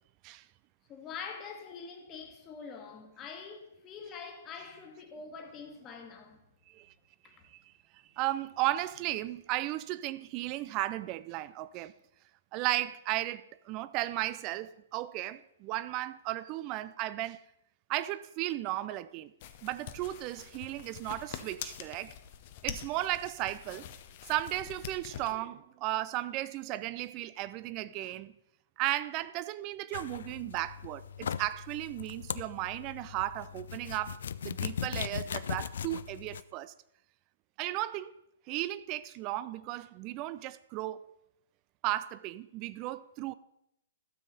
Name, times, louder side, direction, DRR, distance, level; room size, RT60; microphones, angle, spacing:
voice 1, 0.9-6.4 7.2-7.4, left 5 dB, 25° left, 1.5 m, -45 dB
voice 2, 8.2-11.9 12.5-17.4 17.9-19.3 19.6-22.1 22.6-23.9 24.3-28.3 28.8-36.7 37.6-38.1 38.5-41.1 41.8-43.3, right 16 dB, 30° right, 0.4 m, -35 dB
sound 1, 19.4-25.3, left 10 dB, 40° left, 0.8 m, -45 dB
sound 2, 29.9-36.4, left 8 dB, 60° left, 0.4 m, -39 dB
12.5 x 7.2 x 4.0 m
figure-of-eight pair, 120°, 0 cm